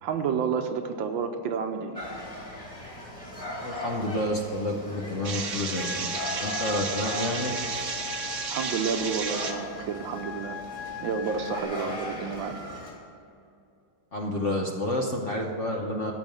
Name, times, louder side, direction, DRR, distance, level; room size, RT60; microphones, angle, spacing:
voice 1, 0.0-2.0 8.5-10.6 11.0-12.6, right 6 dB, 75° right, 7 dB, 1.5 m, -30 dB
sound 1, 2.0-12.9, left 1 dB, 15° left, 2.6 m, -39 dB
voice 2, 3.6-6.1 6.4-7.5 14.1-16.1, left 1 dB, 45° left, 0 dB, 1.0 m, -29 dB
sound 2, 5.2-9.6, right 5 dB, 50° right, 1.0 m, -33 dB
sound 3, 5.8-11.6, left 6 dB, 75° left, 1.4 m, -39 dB
13.5 x 5.2 x 9.1 m, 2.6 s
omnidirectional pair, 2.3 m